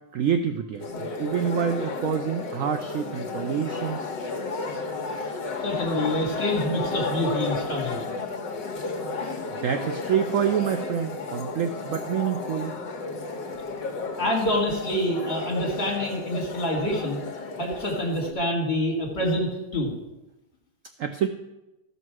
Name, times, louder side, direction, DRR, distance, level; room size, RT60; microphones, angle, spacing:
voice 1, 0.1-0.9 1.2-4.1 9.6-12.8 21.0-21.3, right 8 dB, 80° right, 8 dB, 0.7 m, -27 dB
sound 1, 0.8-18.3, left 4 dB, 75° left, 1.8 m, -33 dB
voice 2, 5.6-8.0 14.2-17.2 17.6-19.9, equal, 35° left, -1 dB, 2.8 m, -26 dB
13.5 x 5.5 x 6.1 m, 0.96 s
omnidirectional pair, 2.0 m